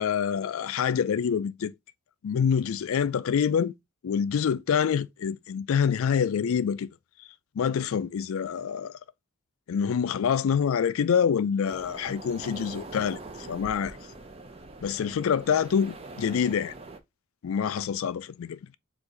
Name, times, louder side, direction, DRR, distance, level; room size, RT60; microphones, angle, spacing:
voice 1, 0.0-1.7 2.2-3.7 4.0-6.9 7.6-9.0 9.7-14.0 14.8-16.7 17.4-18.6, left 7 dB, 70° left, 0.3 m, -26 dB
sound 1, 11.6-17.0, right 2 dB, 25° right, 0.5 m, -43 dB
4.6 x 2.5 x 3.8 m
head